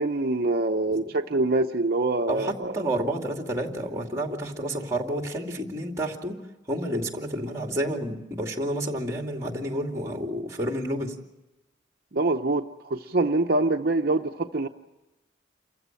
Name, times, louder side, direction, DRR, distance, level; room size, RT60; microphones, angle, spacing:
voice 1, 0.0-2.8 12.1-14.7, right 2 dB, 50° right, 4 dB, 0.7 m, -25 dB
voice 2, 2.3-6.4 6.7-11.1, right 1 dB, 15° right, 2 dB, 2.5 m, -30 dB
28.5 x 15.5 x 8.9 m, 1.0 s
head